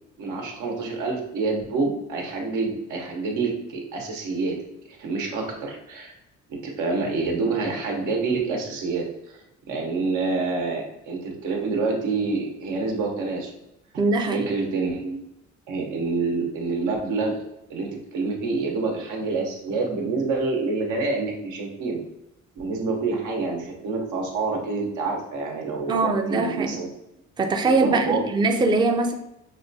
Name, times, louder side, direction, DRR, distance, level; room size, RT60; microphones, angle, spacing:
voice 1, 0.2-4.6 4.9-6.1 6.5-9.4 9.7-13.5 14.3-15.2 15.7-17.4 17.7-22.0 22.6-26.9 27.7-28.2, right 3 dB, 90° right, 1 dB, 0.9 m, -27 dB
voice 2, 14.0-14.5 25.9-26.8 27.4-29.1, right 3 dB, 15° right, 4 dB, 0.4 m, -22 dB
5.6 x 2.2 x 2.6 m, 0.88 s
cardioid pair, 90°, 30 cm